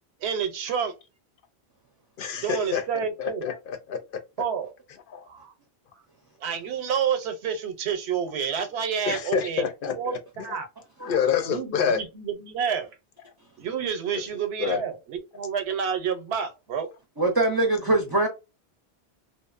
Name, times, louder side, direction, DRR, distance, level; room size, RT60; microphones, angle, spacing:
voice 1, 0.2-1.0 2.3-3.5 4.4-4.7 5.3-5.5 6.4-9.6 9.9-10.7 11.5-12.9 13.6-16.9, right 7 dB, 90° right, 0.9 m, -29 dB
voice 2, 2.2-2.8 3.2-4.2 5.1-5.2 9.1-10.6 11.0-12.0 14.1-14.2 14.6-14.8, left 7 dB, 60° left, 0.7 m, -28 dB
voice 3, 17.2-18.3, right 2 dB, 30° right, 0.5 m, -22 dB
2.6 x 2.0 x 2.3 m
omnidirectional pair, 1.1 m